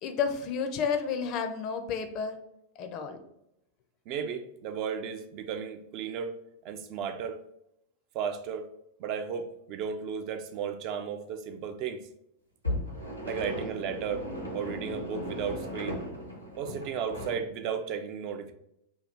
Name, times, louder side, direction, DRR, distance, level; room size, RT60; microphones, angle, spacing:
voice 1, 0.0-2.4 2.8-3.2, left 6 dB, 40° left, 7 dB, 0.4 m, -31 dB
voice 2, 4.1-6.3 6.6-7.4 8.1-8.7 9.0-12.0 13.2-16.0 16.6-18.5, right 7 dB, 40° right, 8 dB, 0.3 m, -34 dB
sound 1, 12.6-17.4, equal, 90° left, 1.0 m, -36 dB
2.7 x 2.3 x 3.3 m, 0.81 s
figure-of-eight pair, 90°, 0 cm